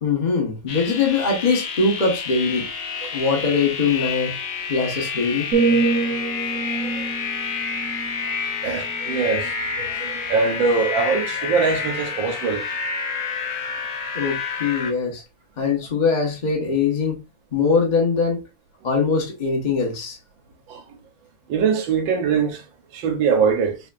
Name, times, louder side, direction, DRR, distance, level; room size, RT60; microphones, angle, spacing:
voice 1, 0.0-2.7 3.1-4.4 4.7-5.5 14.1-15.2 15.6-17.2 17.5-18.4 18.8-20.2, left 4 dB, 35° left, 0.8 m, -22 dB
sound 1, 0.7-14.9, left 5 dB, 70° left, 1.5 m, -29 dB
sound 2, 5.5-9.4 9.9-10.2, right 4 dB, 55° right, 1.2 m, -26 dB
voice 2, 6.8-7.1 8.6-12.6 20.7-20.8 21.5-22.6 22.9-23.8, right 5 dB, 80° right, 1.6 m, -22 dB
5.0 x 2.8 x 2.4 m
omnidirectional pair, 2.1 m